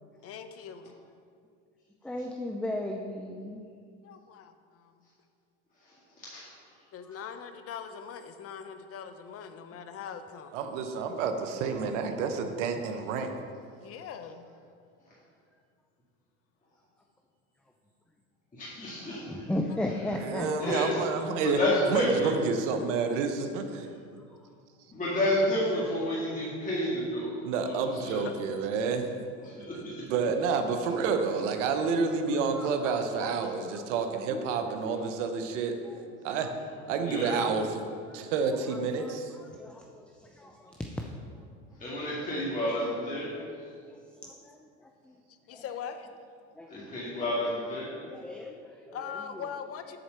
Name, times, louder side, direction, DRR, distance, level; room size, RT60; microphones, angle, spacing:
voice 1, 0.2-0.9 4.0-5.0 6.9-10.6 13.8-14.4 19.1-19.2 28.2-28.3 45.3-46.1 48.9-50.0, left 7 dB, 40° left, 9 dB, 0.7 m, -41 dB
voice 2, 2.0-3.6 7.0-7.2 18.9-21.3 24.2-24.5 28.7-28.9 30.2-30.7 31.5-31.7 32.2-35.3 35.8-41.5 42.7-42.8 43.2-45.2 45.5-45.8 46.5-46.7 47.2-47.5 48.0-50.0, left 1 dB, 5° left, 2 dB, 0.4 m, -39 dB
voice 3, 5.8-6.7 18.5-19.4 20.6-21.0 21.4-22.3 24.9-27.4 27.6-28.3 29.4-29.9 37.0-37.4 41.8-43.3 46.7-47.9, left 1 dB, 20° left, -8 dB, 2.0 m, -30 dB
voice 4, 10.5-13.3 20.3-21.6 21.9-23.9 27.4-29.2 30.1-35.7 36.2-36.5 36.9-37.6 38.1-39.3, right 5 dB, 80° right, 6 dB, 0.9 m, -29 dB
7.9 x 4.2 x 6.7 m, 2.3 s
supercardioid pair, 95°, 36 cm